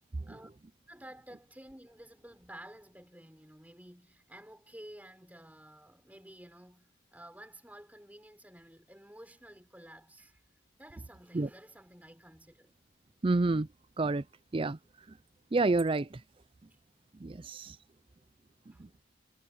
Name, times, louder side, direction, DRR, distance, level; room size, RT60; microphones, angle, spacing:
voice 1, 0.9-10.4 10.8-12.7 16.7-16.8 18.7-18.9, right 1 dB, 10° right, 6.4 m, -52 dB
voice 2, 13.2-13.7 14.0-14.2 14.5-14.8 15.5-16.2 17.2-17.8 18.8-18.9, right 3 dB, 25° right, 0.4 m, -28 dB
head